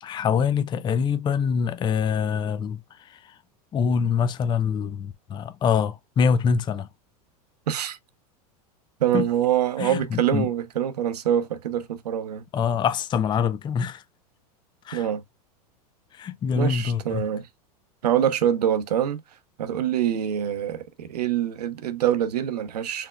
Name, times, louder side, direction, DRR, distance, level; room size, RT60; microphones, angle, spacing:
voice 1, 0.0-2.8 3.1-3.2 3.7-6.9 9.1-9.3 9.8-10.5 12.5-14.0 14.9-15.1 16.2-17.2, left 6 dB, 25° left, 0.5 m, -24 dB
voice 2, 7.7-8.0 9.0-12.4 14.9-15.2 16.6-17.5 18.0-19.2 19.6-23.1, right 10 dB, 90° right, 0.8 m, -25 dB
4.5 x 3.6 x 2.3 m
hypercardioid pair, 115°, 20 cm